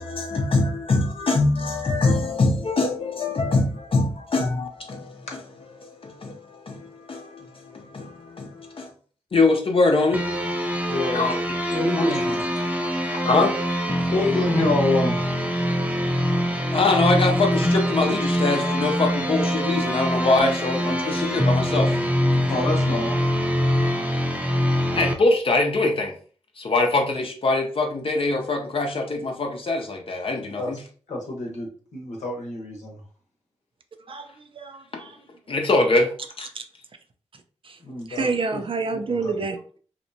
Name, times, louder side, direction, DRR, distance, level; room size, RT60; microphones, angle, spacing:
voice 1, 0.0-5.3 5.8-8.9 9.3-10.3 11.1-11.4 11.9-12.0 13.2-13.5 16.7-22.0 24.9-26.2 26.6-30.8 35.5-36.1 36.4-36.5, left 3 dB, 50° left, 0.6 m, -23 dB
sound 1, 10.1-25.1, equal, 10° right, 0.6 m, -24 dB
voice 2, 10.9-11.3 11.7-12.4 13.0-13.2 13.9-15.3 22.3-23.2 30.4-30.7 31.1-31.7 31.9-33.0 37.8-38.6 38.9-39.3, left 2 dB, 75° left, 0.8 m, -27 dB
voice 3, 34.1-35.2 36.5-36.6 37.3-37.8 38.1-39.8, right 4 dB, 50° right, 0.4 m, -29 dB
2.8 x 2.1 x 2.6 m
supercardioid pair, 40°, 12 cm